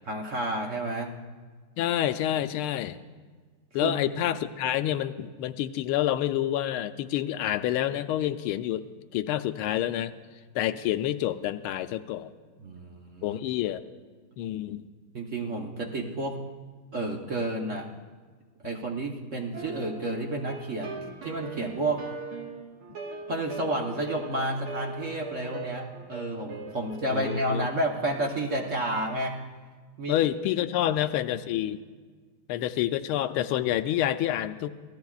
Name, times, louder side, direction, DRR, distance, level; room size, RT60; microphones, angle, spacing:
voice 1, 0.0-1.1 3.8-4.2 12.6-13.4 15.1-16.4 16.9-17.9 18.6-22.0 23.3-29.4 30.0-30.2 30.8-30.9, right 1 dB, 45° right, 0 dB, 1.0 m, -31 dB
voice 2, 1.8-3.0 3.7-8.9 9.1-10.1 10.5-12.3 13.2-13.8 14.4-14.9 27.1-27.7 30.1-31.8 32.5-34.7, left 12 dB, 85° left, 10 dB, 1.5 m, -28 dB
sound 1, 19.5-29.1, right 4 dB, 80° right, 2.4 m, -40 dB
26.0 x 17.0 x 2.4 m, 1.5 s
omnidirectional pair, 2.3 m